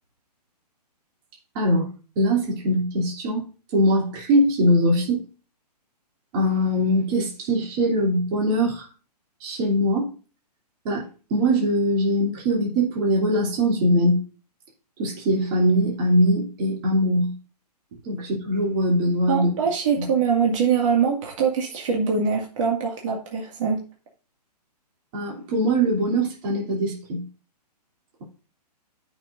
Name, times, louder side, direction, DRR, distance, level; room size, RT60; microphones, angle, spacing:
voice 1, 1.5-1.9 2.2-5.2 6.3-8.9 9.4-10.1 10.8-14.2 15.0-17.3 18.0-19.5 20.0-20.1 25.1-27.2, equal, 30° right, -3 dB, 2.9 m, -22 dB
voice 2, 19.3-23.8, right 6 dB, 50° right, -1 dB, 2.1 m, -23 dB
14.5 x 6.1 x 2.6 m, 0.36 s
hypercardioid pair, 155°, 21 cm